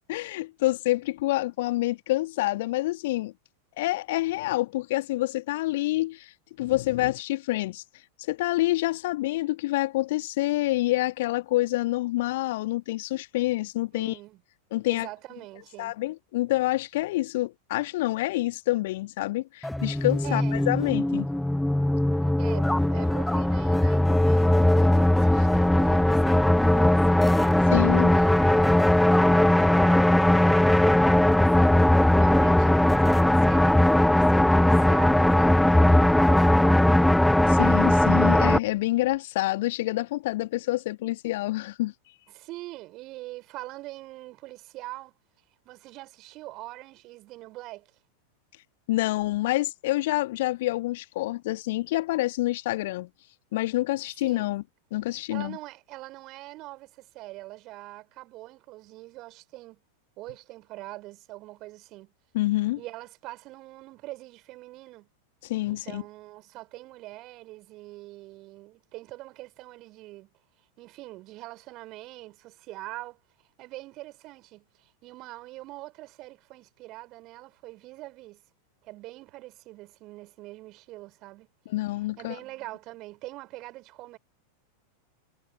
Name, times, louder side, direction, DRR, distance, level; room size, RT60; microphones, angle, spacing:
voice 1, 0.1-3.3 3.8-6.3 6.6-7.8 8.3-14.2 14.7-15.1 15.8-21.3 27.7-28.1 37.5-41.9 48.9-53.1 53.5-54.6 54.9-55.6 62.3-62.8 65.4-66.0 81.7-82.4, left 18 dB, 55° left, 1.8 m, -27 dB
voice 2, 13.9-14.4 14.8-16.0 20.2-20.6 22.4-27.6 28.1-37.2 42.3-45.2 45.7-47.9 54.2-54.6 55.3-59.8 60.2-62.1 62.8-65.1 65.7-70.3 70.8-73.2 73.6-78.4 78.8-81.5 82.2-84.2, right 19 dB, 40° right, 5.4 m, -43 dB
sound 1, 19.6-38.6, left 1 dB, 5° left, 0.3 m, -20 dB
figure-of-eight pair, 90°, 0 cm